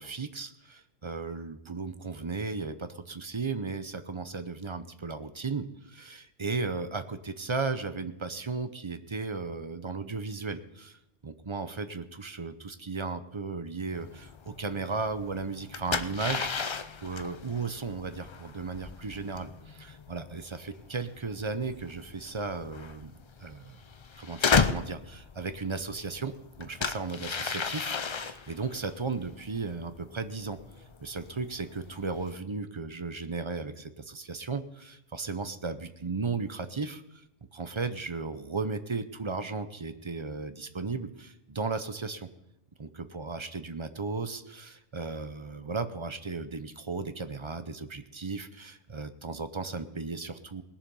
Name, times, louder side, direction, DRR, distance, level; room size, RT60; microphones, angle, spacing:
voice 1, 0.0-11.0 11.2-23.1 23.4-23.8 24.2-30.6 31.0-37.2 37.5-42.3 42.8-50.6, right 4 dB, 30° right, 10 dB, 0.6 m, -35 dB
sound 1, 13.9-32.3, left 5 dB, 45° left, 0.4 m, -35 dB
20.0 x 7.2 x 5.5 m, 0.87 s
omnidirectional pair, 1.1 m